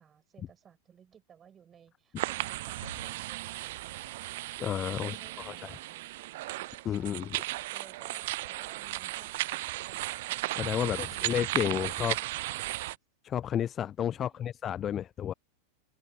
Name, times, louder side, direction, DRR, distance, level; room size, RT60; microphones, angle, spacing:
voice 1, 0.0-4.4 4.9-10.7 11.0-12.9 14.1-14.5, right 8 dB, 25° right, 4.0 m, -58 dB
sound 1, 2.2-13.0, right 18 dB, 50° right, 0.4 m, -35 dB
sound 2, 2.7-3.8, left 1 dB, 85° left, 2.5 m, -51 dB
voice 2, 4.6-5.7 6.8-7.4 10.6-12.2 13.2-15.3, left 10 dB, 25° left, 0.4 m, -32 dB
figure-of-eight pair, 90°, 0 cm